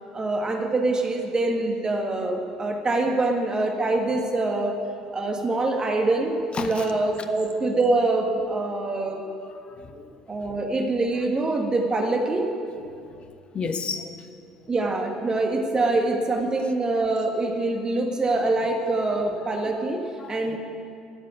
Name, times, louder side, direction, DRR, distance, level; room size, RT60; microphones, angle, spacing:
voice 1, 0.1-4.8 5.1-9.2 10.3-12.5 14.7-20.6, right 2 dB, 25° right, 2 dB, 1.7 m, -24 dB
voice 2, 9.7-10.1 13.0-14.0 20.2-20.6, left 5 dB, 40° left, 7 dB, 1.2 m, -33 dB
12.5 x 7.4 x 9.5 m, 2.4 s
figure-of-eight pair, 55°, 3 cm